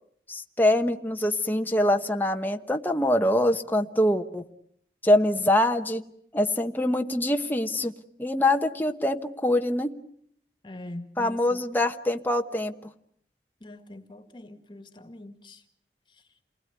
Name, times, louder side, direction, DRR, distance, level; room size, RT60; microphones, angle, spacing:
voice 1, 0.3-4.4 5.0-6.0 6.3-7.9 8.2-9.9 11.2-12.7, left 1 dB, 10° left, 1.1 m, -24 dB
voice 2, 10.6-11.6 13.6-15.6 16.1-16.3, left 1 dB, 25° left, 1.9 m, -43 dB
29.0 x 20.0 x 9.5 m
head